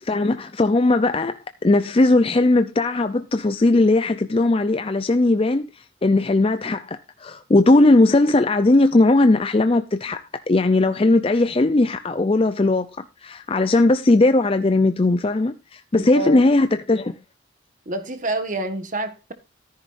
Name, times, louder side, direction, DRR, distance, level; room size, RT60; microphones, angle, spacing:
voice 1, 0.0-17.2, left 2 dB, 30° left, 0.5 m, -18 dB
voice 2, 15.9-16.5 17.8-19.3, right 2 dB, 40° right, 1.4 m, -28 dB
13.5 x 10.5 x 2.5 m
head